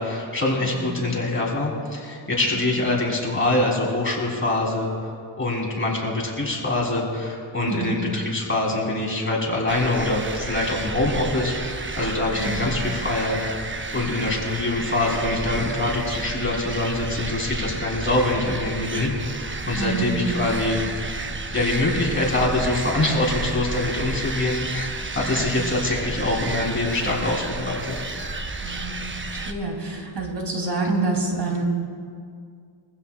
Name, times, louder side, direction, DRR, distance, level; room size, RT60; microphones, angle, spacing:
voice 1, 0.0-4.9 5.4-20.8 21.5-28.0, left 2 dB, 25° left, -3 dB, 3.8 m, -24 dB
voice 2, 0.6-1.0 2.5-2.7 7.7-8.0 12.3-12.8 19.8-20.3 25.2-25.7 28.6-29.1 29.5-31.6, right 3 dB, 60° right, 0 dB, 3.4 m, -28 dB
sound 1, 9.7-29.5, right 3 dB, 25° right, 0.9 m, -31 dB
23.5 x 15.5 x 2.5 m, 2.2 s
cardioid pair, 90°, 47 cm